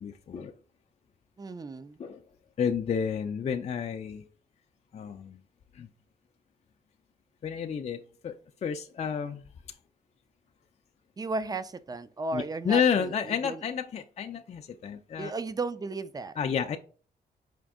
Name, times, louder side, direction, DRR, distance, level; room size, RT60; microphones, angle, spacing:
voice 1, 0.0-0.5 2.0-2.2 2.6-4.2 4.9-5.4 5.7-5.9 7.4-9.4 12.3-15.3 16.4-16.8, left 7 dB, 40° left, 0.4 m, -30 dB
voice 2, 1.4-2.0 11.2-13.6 15.2-16.4, right 3 dB, 25° right, 0.4 m, -35 dB
5.1 x 2.5 x 3.6 m
cardioid pair, 90°, 17 cm